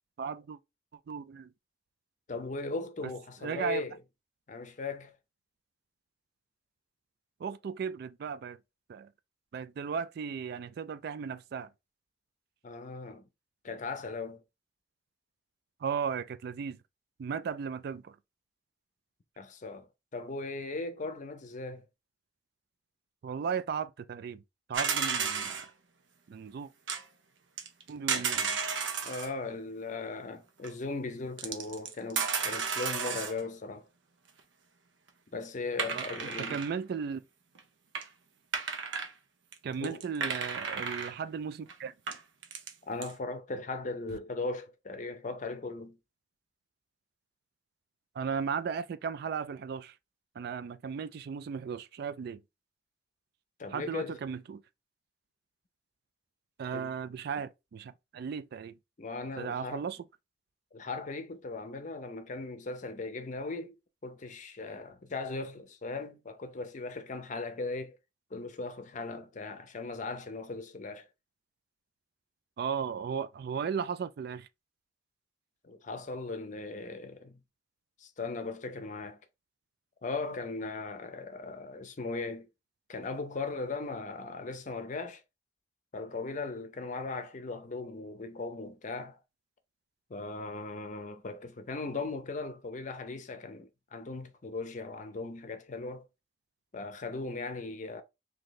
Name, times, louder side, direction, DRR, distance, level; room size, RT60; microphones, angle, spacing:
voice 1, 0.2-0.6 1.1-1.5 3.4-3.8 7.4-8.6 8.9-9.1 9.5-11.7 15.8-16.8 17.2-18.1 23.2-24.4 24.7-25.6 26.3-26.7 27.9-28.6 35.9-36.1 36.5-37.2 39.6-41.9 48.2-49.9 50.4-52.4 53.7-54.6 56.6-58.7 59.4-60.0 72.6-74.5, right 6 dB, 60° right, 0.3 m, -36 dB
voice 2, 2.3-4.0 4.5-5.1 12.6-13.3 13.6-14.4 19.4-21.8 28.1-28.3 29.0-33.9 35.3-36.6 39.8-40.0 42.9-46.0 53.6-54.2 56.7-56.9 59.0-59.9 60.7-63.7 64.0-68.0 68.3-71.1 75.6-77.4 78.0-79.2 80.0-82.5 82.9-85.2 85.9-89.2 90.1-96.1 96.7-98.0, left 3 dB, 40° left, 0.6 m, -38 dB
sound 1, 24.7-25.7 26.9-27.0 27.6-29.3 30.6-30.7 31.4-33.4 35.8-36.8 37.6-37.7 37.9-38.1 38.5-39.1 39.5-39.6 39.8-41.1 41.7-41.8 42.1-42.7 43.0-43.1, right 6 dB, 85° right, 0.7 m, -33 dB
3.1 x 2.7 x 3.9 m
head